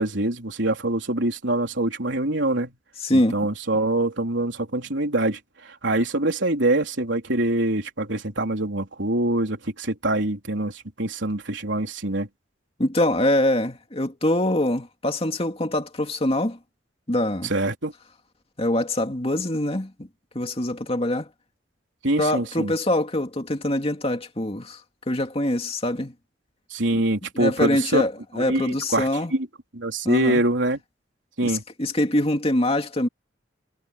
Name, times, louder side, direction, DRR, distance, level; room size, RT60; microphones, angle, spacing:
voice 1, 0.0-2.7 3.1-12.3 17.4-17.9 22.0-22.7 26.7-28.0 28.3-29.5 29.7-30.8 31.4-31.6, right 1 dB, 70° right, 3.8 m, -24 dB
voice 2, 3.0-3.5 12.8-16.6 17.1-17.5 18.6-20.1 20.3-21.3 22.2-24.8 25.1-26.1 26.9-27.0 27.3-29.3 30.0-30.4 31.4-33.1, left 1 dB, 30° left, 2.6 m, -24 dB
head